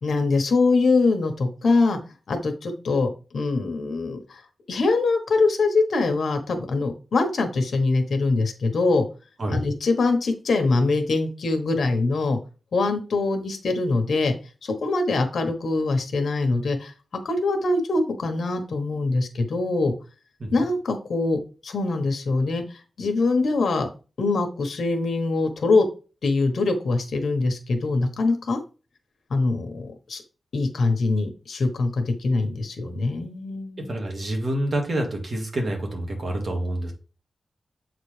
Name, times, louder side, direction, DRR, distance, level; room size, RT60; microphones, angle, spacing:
voice 1, 0.0-2.0 2.3-4.4 4.7-9.0 9.5-12.4 12.7-14.3 14.6-16.9 17.2-19.9 20.5-22.6 23.0-23.9 24.2-25.9 26.2-28.6 29.3-30.2 30.5-34.0, left 3 dB, 70° left, 6 dB, 1.2 m, -23 dB
voice 2, 33.8-36.9, right 1 dB, 45° right, 2 dB, 1.8 m, -27 dB
7.9 x 4.1 x 3.3 m, 0.34 s
wide cardioid pair, 130°, 0 cm